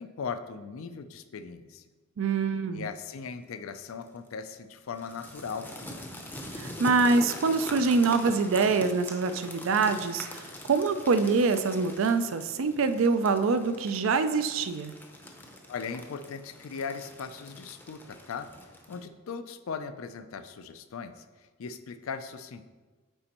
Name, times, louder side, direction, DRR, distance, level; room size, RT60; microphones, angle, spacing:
voice 1, 0.0-1.8 2.7-5.7 15.7-18.5 18.9-21.2 21.6-22.6, left 5 dB, 80° left, 11 dB, 0.4 m, -38 dB
voice 2, 2.2-2.9 6.6-14.9, right 4 dB, 70° right, 11 dB, 0.4 m, -25 dB
sound 1, 3.7-4.0 4.9-19.0, left 1 dB, 10° left, 0.6 m, -43 dB
8.9 x 4.3 x 2.9 m, 1.3 s
head